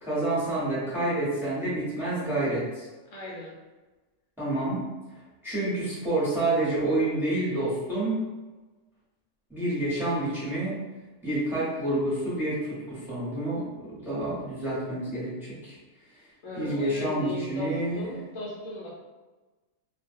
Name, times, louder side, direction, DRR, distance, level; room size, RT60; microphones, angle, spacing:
voice 1, 0.0-2.9 4.4-4.8 5.4-8.2 9.5-10.8 11.2-15.8 16.5-18.1, right 1 dB, ahead, -10 dB, 0.9 m, -28 dB
voice 2, 3.1-3.5 16.4-19.0, left 1 dB, 75° left, -5 dB, 1.0 m, -36 dB
2.4 x 2.3 x 2.5 m, 1.2 s
omnidirectional pair, 1.4 m